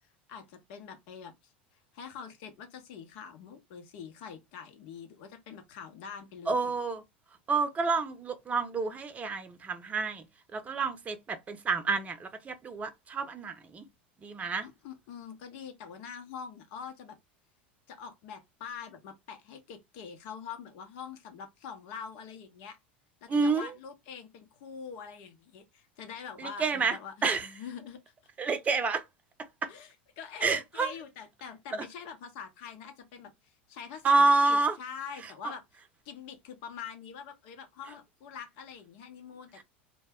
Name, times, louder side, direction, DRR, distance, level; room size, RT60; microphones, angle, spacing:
voice 1, 0.3-1.5 1.9-6.7 14.6-17.2 17.9-22.8 23.2-28.0 29.7-29.9 30.2-35.6 36.0-39.6, left 7 dB, 65° left, 0.9 m, -44 dB
voice 2, 6.5-7.0 7.5-10.3 10.5-13.9 14.2-14.7 23.3-23.7 26.4-27.0 27.2-27.5 28.4-29.0 29.6-29.7 30.4-30.9 31.7-31.8 34.0-34.8 35.2-35.3, right 4 dB, 25° right, 0.6 m, -28 dB
2.2 x 2.1 x 3.5 m
hypercardioid pair, 90°, 6 cm